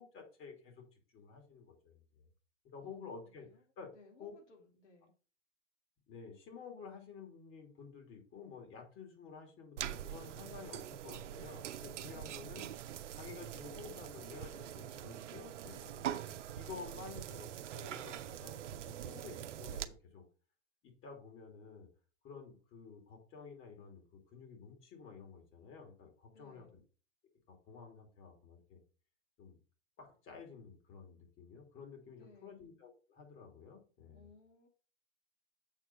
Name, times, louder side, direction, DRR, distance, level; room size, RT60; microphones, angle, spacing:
voice 1, 0.0-2.3 2.6-3.5 3.8-3.9 4.2-4.3 6.1-12.7 13.2-17.5 17.7-18.6 18.9-20.2 20.8-21.9 22.2-26.7 27.5-28.8 29.4-29.6 30.0-34.3, left 5 dB, 35° left, 3 dB, 2.9 m, -52 dB
voice 2, 2.8-3.6 3.9-5.1 26.3-26.8 32.2-32.7 34.1-34.7, left 3 dB, 75° left, 3 dB, 2.9 m, -62 dB
sound 1, 9.8-19.8, right 11 dB, 75° right, 0.8 m, -44 dB
7.3 x 4.7 x 5.7 m, 0.39 s
hypercardioid pair, 110°, 36 cm